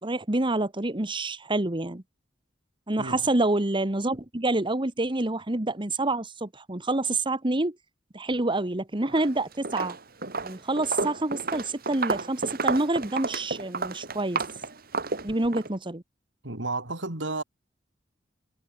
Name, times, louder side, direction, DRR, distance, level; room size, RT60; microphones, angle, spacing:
voice 1, 0.0-2.0 2.9-7.7 8.1-10.0 10.4-14.4 15.2-16.0, right 2 dB, 25° right, 1.5 m, -27 dB
Walk footsteps, 9.0-9.3 9.6-15.7, right 4 dB, 55° right, 3.4 m, -31 dB
voice 2, 16.4-17.4, right 2 dB, 75° right, 3.9 m, -32 dB
head